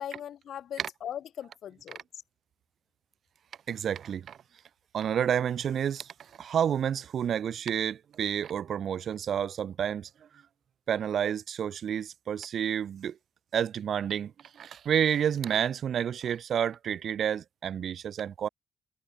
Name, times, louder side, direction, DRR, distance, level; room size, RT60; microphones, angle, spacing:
voice 1, 0.0-2.2, left 10 dB, 65° left, 2.3 m, -39 dB
voice 2, 3.7-4.4 4.9-6.1 6.4-10.1 10.9-13.2 13.5-18.5, right 8 dB, 60° right, 1.8 m, -30 dB
cardioid pair, 90°, 0 cm